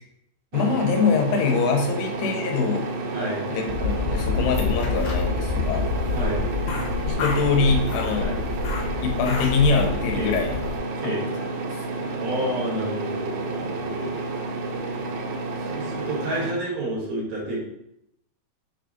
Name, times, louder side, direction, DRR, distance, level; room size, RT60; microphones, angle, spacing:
voice 1, 0.5-2.9 3.5-5.9 7.0-8.3 9.0-10.6 11.0-11.2, left 5 dB, 90° left, 2 dB, 3.4 m, -23 dB
sound 1, 0.5-16.5, right 3 dB, 85° right, 3.2 m, -30 dB
voice 2, 3.1-3.5 6.1-6.4 8.2-8.4 10.1-10.3 11.0-11.3 12.2-14.2 15.6-17.6, right 1 dB, 60° right, -4 dB, 3.2 m, -29 dB
sound 2, 3.7-10.8, left 5 dB, 70° left, 2.5 m, -28 dB
7.3 x 3.4 x 3.8 m, 0.77 s
omnidirectional pair, 5.4 m